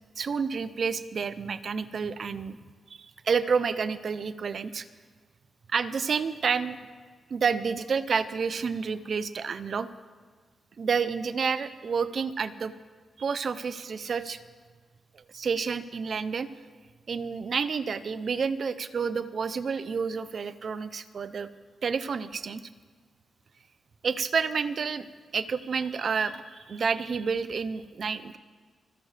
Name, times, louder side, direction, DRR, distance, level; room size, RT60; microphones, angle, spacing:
voice 1, 0.2-2.6 2.9-4.9 5.7-6.8 7.3-9.9 10.8-12.7 13.2-14.4 15.1-16.5 17.1-21.5 21.8-22.6 24.0-25.1 25.3-28.4, right 5 dB, 45° right, 14 dB, 0.5 m, -29 dB
26.5 x 11.0 x 3.3 m, 1.5 s
wide cardioid pair, 175°, 0 cm